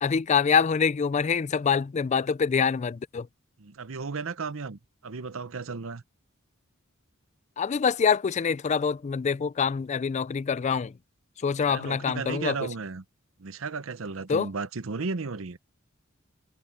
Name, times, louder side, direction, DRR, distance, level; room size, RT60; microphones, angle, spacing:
voice 1, 0.0-3.3 7.6-10.9 11.4-12.5 14.3-14.5, left 6 dB, 35° left, 0.3 m, -25 dB
voice 2, 3.6-6.0 11.7-13.0 13.4-15.6, right 4 dB, 70° right, 0.8 m, -34 dB
head